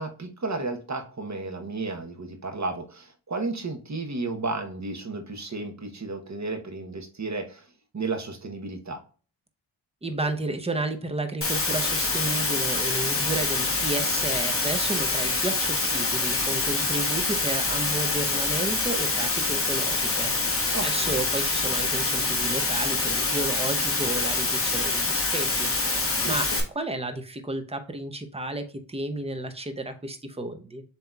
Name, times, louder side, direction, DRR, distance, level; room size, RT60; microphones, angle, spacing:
voice 1, 0.0-7.7 7.9-9.0 20.7-21.1 26.2-26.6, right 3 dB, 40° right, 5 dB, 0.9 m, -33 dB
voice 2, 10.0-25.7 26.3-26.5 26.7-30.8, right 2 dB, 15° right, 8 dB, 0.7 m, -32 dB
Water, 11.4-26.6, left 3 dB, 30° left, 1.0 m, -26 dB
7.5 x 2.9 x 2.3 m, 0.39 s
wide cardioid pair, 110°, 46 cm